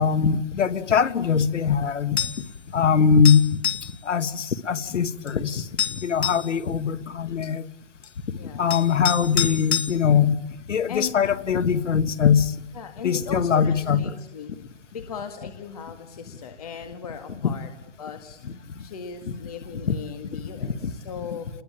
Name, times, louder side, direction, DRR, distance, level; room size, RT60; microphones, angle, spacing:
voice 1, 0.0-2.2 2.7-3.6 4.1-5.7 6.0-7.6 8.6-10.4 10.7-12.5 13.0-14.2 17.4-17.5 18.4-18.5 19.9-20.0 20.6-20.7, left 7 dB, 85° left, 1.8 m, -21 dB
sound 1, 2.2-2.5 3.3-3.9 5.3-5.4 5.8-6.5 8.0-8.1 8.7-9.9, left 9 dB, 60° left, 2.8 m, -27 dB
voice 2, 8.3-8.7 10.9-11.2 12.8-14.5 14.9-17.7 18.0-18.4 18.8-21.5, left 7 dB, 30° left, 1.9 m, -37 dB
30.0 x 21.5 x 8.8 m
hypercardioid pair, 180°, 35 cm